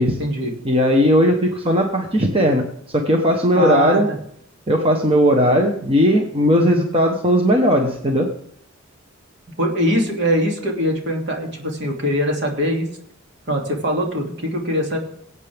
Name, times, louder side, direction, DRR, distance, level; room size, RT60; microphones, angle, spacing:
voice 1, 0.0-0.5 3.5-4.2 6.6-6.8 9.6-12.9 13.5-15.0, equal, 60° right, 0 dB, 2.7 m, -22 dB
voice 2, 0.6-4.1 4.7-8.3, equal, 30° right, 2 dB, 1.2 m, -17 dB
23.0 x 8.3 x 3.5 m, 0.68 s
head